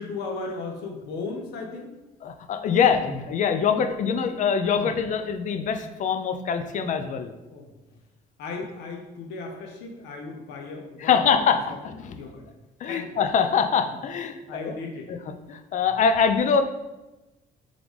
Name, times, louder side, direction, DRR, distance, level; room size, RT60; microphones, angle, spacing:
voice 1, 0.0-1.9 4.7-4.9 7.5-7.7 8.4-11.8 12.0-12.5 12.8-13.2 14.5-15.1, left 3 dB, 85° left, 2 dB, 0.6 m, -36 dB
voice 2, 2.2-7.3 11.0-12.1 12.8-14.4 14.6-14.7 15.1-16.6, left 6 dB, 50° left, 8 dB, 0.4 m, -24 dB
3.8 x 3.5 x 3.1 m, 1.0 s
cardioid pair, 110°, 17 cm